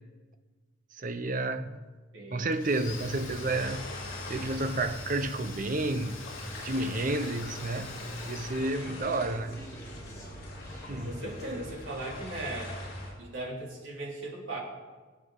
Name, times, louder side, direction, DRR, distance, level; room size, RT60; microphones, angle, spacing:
voice 1, 0.9-1.9 2.3-3.9 4.3-6.3 6.6-9.7 10.9-11.2, right 2 dB, 40° right, 0.7 m, -31 dB
voice 2, 2.1-2.5 11.0-12.8 13.2-14.6, right 2 dB, 65° right, 3.4 m, -38 dB
Domestic sounds home sounds, 2.5-9.3, left 6 dB, 70° left, 1.8 m, -47 dB
sound 1, 2.9-13.1, left 1 dB, 45° left, 4.9 m, -42 dB
Conversation, 3.4-11.9, equal, 15° left, 2.2 m, -51 dB
23.5 x 8.3 x 3.9 m
head